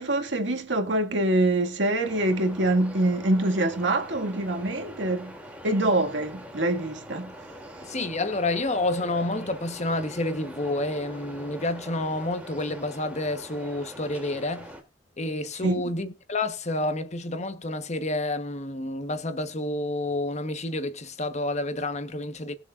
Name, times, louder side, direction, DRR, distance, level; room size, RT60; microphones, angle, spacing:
voice 1, 0.0-5.3 5.6-7.3 15.6-15.8, right 1 dB, 70° right, 1.9 m, -25 dB
sound 1, 2.0-14.8, equal, 5° right, 2.8 m, -43 dB
voice 2, 7.9-14.7 15.2-22.5, left 2 dB, 35° left, 1.1 m, -29 dB
20.0 x 7.2 x 2.5 m
head